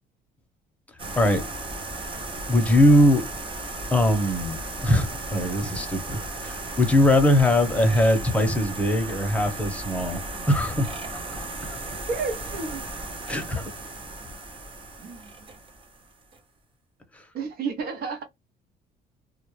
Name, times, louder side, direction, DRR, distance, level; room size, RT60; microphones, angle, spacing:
Computer - Laptop - CD - Spin up, 1.0-16.4, right 2 dB, 30° right, 0.7 m, -35 dB
voice 1, 1.2-1.5 2.5-3.3 3.9-10.2 10.5-11.8 13.3-13.6, left 1 dB, 10° left, 0.7 m, -21 dB
voice 2, 12.1-12.9 15.0-15.3 17.3-18.2, right 4 dB, 65° right, 0.8 m, -31 dB
2.3 x 2.0 x 3.1 m
cardioid pair, 110°, 17 cm